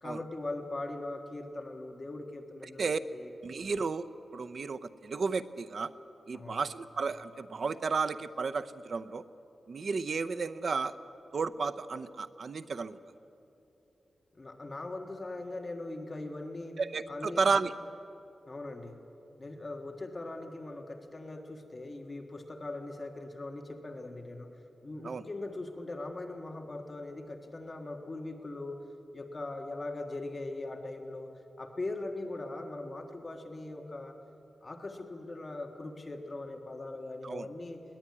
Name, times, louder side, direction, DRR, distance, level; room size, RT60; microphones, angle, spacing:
voice 1, 0.0-3.3 6.3-6.6 14.3-16.8 17.1-17.5 18.4-19.0 19.4-24.5 24.8-28.9 29.1-31.3 31.6-34.2 34.6-37.8, left 2 dB, 30° left, 3 dB, 1.7 m, -40 dB
voice 2, 3.4-4.1 4.3-5.9 6.3-9.2 9.7-10.9 11.3-13.0 16.8-17.7 25.0-25.2 37.2-37.5, right 4 dB, 55° right, 11 dB, 0.7 m, -32 dB
21.0 x 19.5 x 9.7 m, 2.8 s
wide cardioid pair, 125°, 0 cm